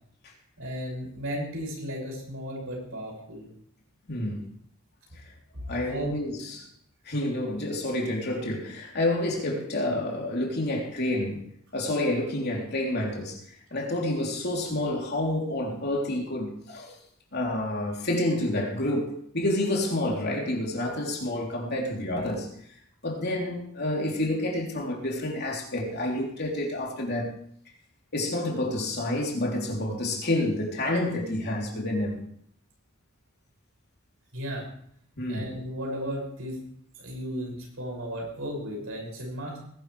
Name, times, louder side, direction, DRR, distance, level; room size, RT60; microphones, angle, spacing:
voice 1, 0.6-3.5 5.5-6.2 34.3-34.7 35.3-36.6 36.9-39.6, equal, 75° right, 6.5 m, -35 dB
voice 2, 4.1-4.4 5.7-6.7 7.0-11.4 11.7-13.4 13.7-16.9 17.3-22.5 23.0-27.3 28.1-32.2 35.2-35.5, left 1 dB, 50° left, 3.4 m, -29 dB
20.0 x 11.5 x 3.3 m
head